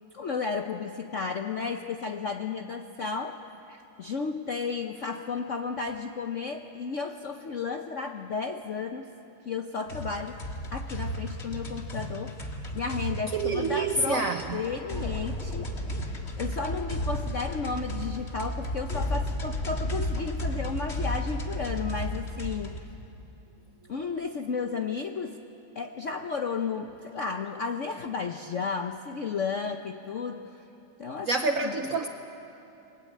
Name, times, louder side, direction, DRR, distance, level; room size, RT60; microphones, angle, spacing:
voice 1, 0.1-3.4 3.7-9.1 9.5-10.4 10.7-16.1 16.4-22.8 23.9-25.4 25.7-30.4 31.0-31.7, left 5 dB, 65° left, 5 dB, 0.7 m, -33 dB
sound 1, 9.9-22.8, equal, 30° left, 2.0 m, -33 dB
voice 2, 13.3-14.6 31.3-32.1, right 3 dB, 55° right, 5 dB, 0.9 m, -27 dB
28.0 x 21.5 x 8.4 m, 2.9 s
omnidirectional pair, 2.3 m